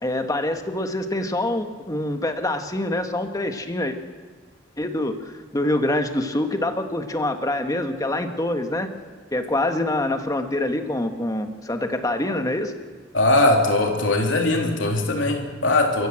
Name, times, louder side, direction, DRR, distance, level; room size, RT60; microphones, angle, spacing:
voice 1, 0.0-4.0 4.8-8.9 9.3-12.7, left 1 dB, 20° left, 6 dB, 1.5 m, -25 dB
voice 2, 13.1-16.1, left 2 dB, 85° left, 2 dB, 3.4 m, -20 dB
28.5 x 15.0 x 7.7 m, 1.5 s
head